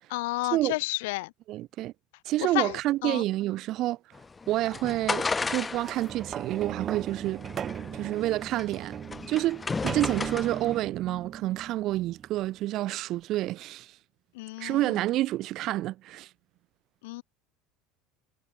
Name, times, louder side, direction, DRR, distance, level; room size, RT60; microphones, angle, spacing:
voice 1, 0.1-1.3 2.4-3.2 14.3-14.9 17.0-17.2, left 22 dB, 90° left, 2.0 m, -31 dB
voice 2, 1.5-1.9 2.2-4.0 4.5-7.4 7.9-9.0 9.3-13.9 14.6-16.3, right 15 dB, 50° right, 0.9 m, -29 dB
sound 1, 4.1-10.8, left 4 dB, 15° left, 0.6 m, -35 dB
sound 2, 5.8-12.6 13.2-13.3, right 9 dB, 30° right, 2.3 m, -38 dB
cardioid pair, 145°, 0 cm